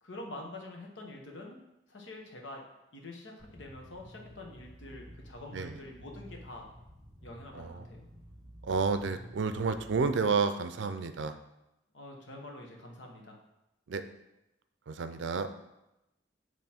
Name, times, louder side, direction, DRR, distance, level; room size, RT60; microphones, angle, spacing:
voice 1, 0.0-1.6 1.9-2.6 2.9-6.7 7.2-8.0 11.9-13.4, left 2 dB, 85° left, 1 dB, 1.1 m, -46 dB
sound 1, 3.4-10.1, equal, 5° left, 2.1 m, -51 dB
voice 2, 8.6-11.4 13.9-14.0 14.9-15.5, right 4 dB, 80° right, 10 dB, 0.4 m, -30 dB
7.4 x 3.1 x 4.3 m, 0.92 s
head